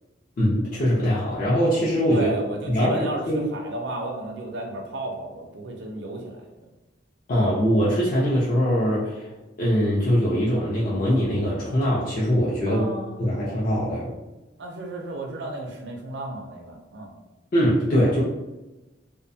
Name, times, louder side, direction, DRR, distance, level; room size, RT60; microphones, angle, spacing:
voice 1, 0.4-2.3 2.7-3.5 7.3-9.3 9.6-12.8 13.2-14.1 17.5-18.2, equal, 45° left, -7 dB, 0.5 m, -22 dB
voice 2, 2.1-6.4 12.7-13.3 14.6-17.1, right 1 dB, 65° right, 1 dB, 0.4 m, -33 dB
2.5 x 2.1 x 2.6 m, 1.1 s
head